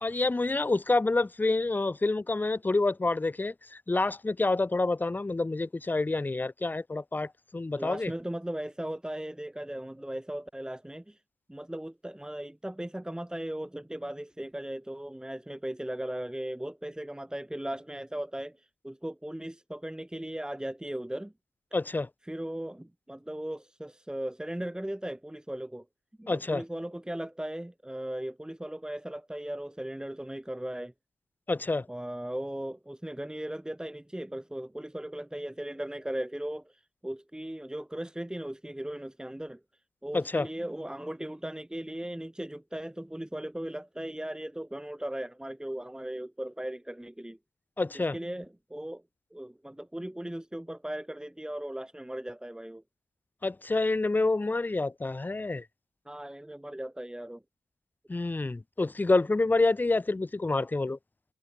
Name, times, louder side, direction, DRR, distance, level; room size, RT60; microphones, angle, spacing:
voice 1, 0.0-8.1 21.7-22.1 26.3-26.6 31.5-31.9 40.1-40.5 47.8-48.2 53.4-55.6 58.1-61.0, left 2 dB, 15° left, 0.6 m, -28 dB
voice 2, 7.8-11.2 11.5-18.6 18.8-21.3 22.3-25.8 26.2-30.9 31.9-36.6 37.0-39.6 40.0-47.4 47.9-49.0 49.3-52.8 56.1-57.4, right 1 dB, 5° right, 4.6 m, -37 dB
cardioid pair, 95°, 11 cm